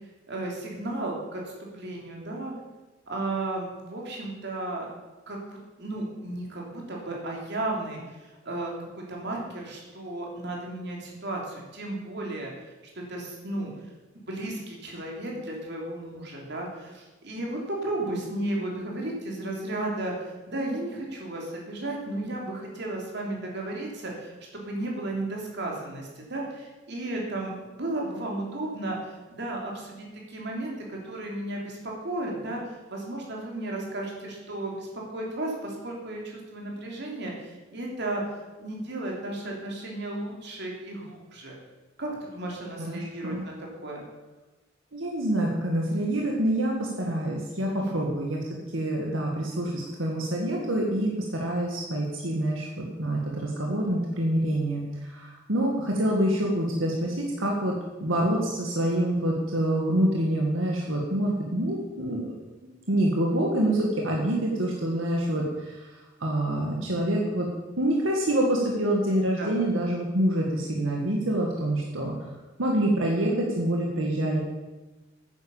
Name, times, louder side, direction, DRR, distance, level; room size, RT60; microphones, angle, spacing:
voice 1, 0.3-2.5 3.1-4.9 5.3-12.7 12.9-13.7 14.3-29.0 29.4-38.2 38.6-41.6 42.0-43.5 43.8-44.0 47.8-48.1 69.4-69.6, right 2 dB, 60° right, -1 dB, 3.3 m, -34 dB
voice 2, 42.9-43.4 44.9-48.4 48.7-57.7 58.0-62.3 62.9-65.9 66.2-67.5 67.8-72.1 72.6-74.4, right 1 dB, 90° right, -1 dB, 1.9 m, -26 dB
9.8 x 9.5 x 7.2 m, 1.2 s
head